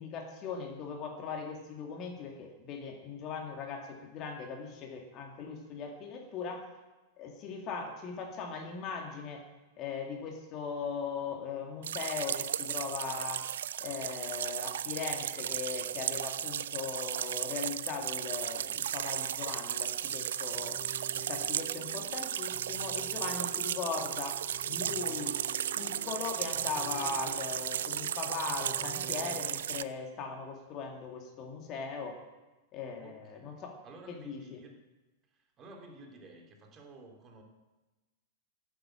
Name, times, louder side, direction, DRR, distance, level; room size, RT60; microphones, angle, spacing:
voice 1, 0.0-6.6 7.2-9.4 9.8-13.4 13.8-20.8 21.2-24.4 24.7-25.4 25.7-32.2 32.7-33.8 34.1-34.6, left 5 dB, 35° left, 2 dB, 2.3 m, -39 dB
sound 1, 11.8-29.8, right 10 dB, 60° right, 0.4 m, -35 dB
sound 2, 20.5-29.4, right 4 dB, 10° left, 3.4 m, -48 dB
voice 2, 33.0-33.5 33.8-34.7 35.3-37.4, right 2 dB, 25° right, 2 dB, 2.6 m, -52 dB
14.5 x 8.2 x 7.6 m, 1.1 s
figure-of-eight pair, 95°, 0 cm